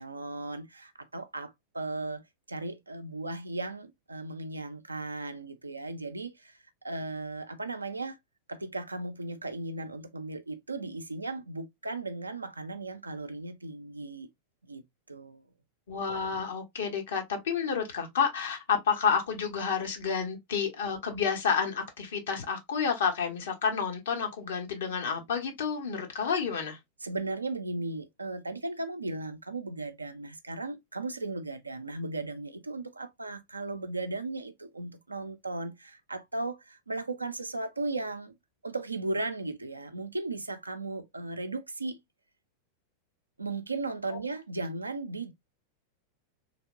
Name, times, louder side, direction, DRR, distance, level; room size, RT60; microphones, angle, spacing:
voice 1, 0.0-6.6 6.8-8.2 8.5-14.3 14.6-14.8 15.1-15.4 27.0-38.4 38.6-42.0 43.4-45.3, right 2 dB, 80° right, 0.5 m, -36 dB
voice 2, 15.9-26.8, left 6 dB, 60° left, 1.0 m, -30 dB
3.3 x 2.8 x 2.3 m
figure-of-eight pair, 90°, 0 cm